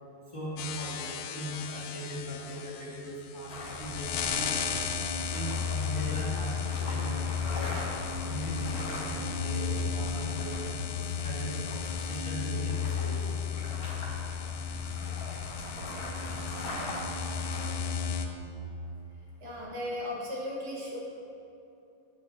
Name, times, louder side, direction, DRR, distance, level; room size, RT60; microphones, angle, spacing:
voice 1, 0.3-4.5 5.3-7.8 8.3-10.8 11.2-11.5 12.0-13.3, equal, 15° left, -8 dB, 1.4 m, -39 dB
sound 1, 0.6-18.3, left 6 dB, 85° left, 2.1 m, -34 dB
sound 2, 3.5-17.7, left 1 dB, 40° left, 1.6 m, -41 dB
voice 2, 19.4-21.0, left 1 dB, 60° right, -5 dB, 2.7 m, -36 dB
13.0 x 9.0 x 2.8 m, 2.9 s
omnidirectional pair, 3.4 m